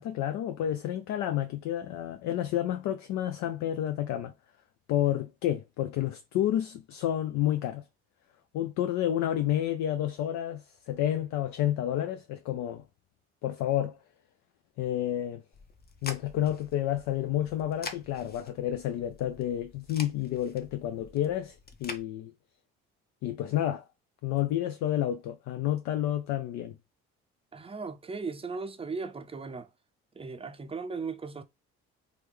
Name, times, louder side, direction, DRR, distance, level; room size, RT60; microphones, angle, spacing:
voice 1, 0.0-4.3 4.9-7.8 8.5-12.8 13.4-14.0 14.8-15.4 16.0-22.3 23.2-23.8 24.2-26.8, left 12 dB, 65° left, 0.5 m, -30 dB
sound 1, 15.5-22.0, left 4 dB, 30° left, 0.8 m, -46 dB
voice 2, 27.5-29.7 30.1-31.4, right 4 dB, 20° right, 0.5 m, -37 dB
3.0 x 2.2 x 3.4 m
supercardioid pair, 65°, 30 cm